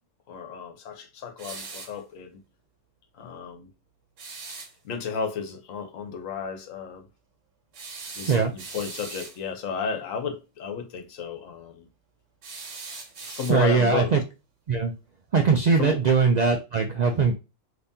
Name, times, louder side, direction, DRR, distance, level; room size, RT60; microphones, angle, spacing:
voice 1, 0.3-2.4 3.1-3.7 4.8-7.1 8.1-11.9 13.2-14.1 15.8-16.0, left 6 dB, 85° left, 1.1 m, -33 dB
sound 1, 1.4-2.0 4.2-4.7 7.7-9.4 12.4-13.9, right 4 dB, 70° right, 1.2 m, -40 dB
voice 2, 13.5-14.2 14.7-14.9 15.3-17.3, right 5 dB, 90° right, 0.3 m, -21 dB
3.5 x 2.9 x 2.7 m
omnidirectional pair, 1.3 m